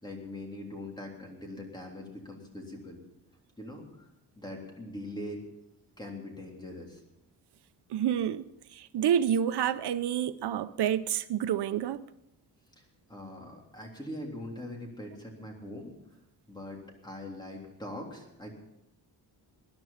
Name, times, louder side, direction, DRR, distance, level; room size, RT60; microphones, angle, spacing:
voice 1, 0.0-3.0 3.6-4.1 4.4-5.4 6.0-7.0 12.8-15.9 16.5-18.5, left 1 dB, 10° left, 3.4 m, -42 dB
voice 2, 7.9-8.4 8.7-12.0, right 9 dB, 80° right, 0.7 m, -28 dB
20.5 x 10.5 x 5.7 m
wide cardioid pair, 160°, 39 cm